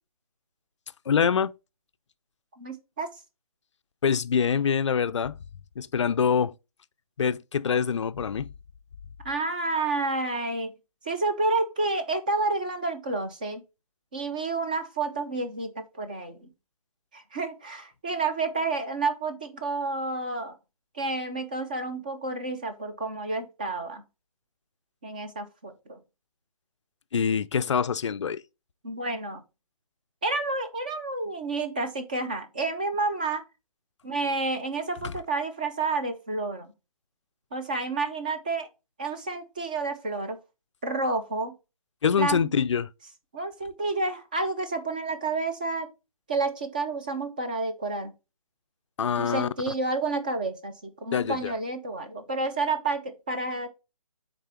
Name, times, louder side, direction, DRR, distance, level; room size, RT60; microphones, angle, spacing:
voice 1, 1.1-1.5 4.0-5.4 5.8-6.5 7.2-8.5 27.1-28.4 35.0-35.1 42.0-42.9 49.0-49.5 51.1-51.5, left 7 dB, 50° left, 0.4 m, -25 dB
voice 2, 2.5-3.1 9.2-10.7 11.0-13.6 14.1-16.5 17.1-20.5 20.9-24.0 25.0-26.0 28.8-29.4 30.2-33.4 34.0-36.7 37.5-38.7 39.0-40.4 40.8-41.5 42.2-42.5 43.3-45.9 46.3-48.1 49.2-53.7, right 3 dB, 15° right, 0.4 m, -30 dB
6.5 x 4.2 x 4.3 m
hypercardioid pair, 160°, 19 cm